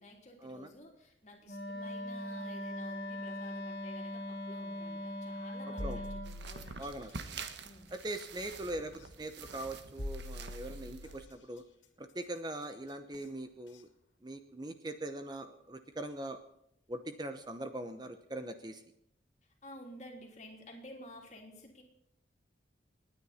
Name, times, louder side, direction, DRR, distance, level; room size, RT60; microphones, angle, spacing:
voice 1, 0.0-6.9 7.6-7.9 19.6-21.8, left 1 dB, 40° left, 1 dB, 3.3 m, -52 dB
Wind instrument woodwind instrument, 1.5-6.3, left 1 dB, 55° left, 2.4 m, -40 dB
sound 1, 5.8-7.1 8.9-9.0 10.0-11.3 13.1-13.2 13.7-13.8, left 1 dB, 85° left, 2.4 m, -43 dB
sound 2, 6.2-11.2, right 4 dB, 70° right, 1.3 m, -47 dB
voice 2, 6.8-7.4 7.9-11.6 12.0-13.9 14.2-16.4 16.9-18.8, right 1 dB, 20° right, 9 dB, 0.8 m, -41 dB
29.0 x 9.8 x 4.3 m, 0.78 s
head